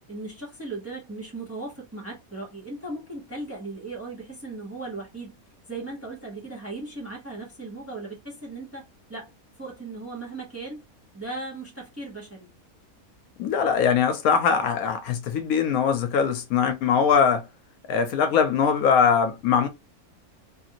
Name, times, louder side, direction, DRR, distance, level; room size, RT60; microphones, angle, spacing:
voice 1, 0.1-5.4 5.7-8.8 9.1-9.3 9.6-10.8 11.1-12.5, right 2 dB, 15° right, 0.7 m, -37 dB
voice 2, 13.4-17.4 17.9-19.7, left 6 dB, 75° left, 1.0 m, -21 dB
3.0 x 2.5 x 2.8 m
omnidirectional pair, 1.5 m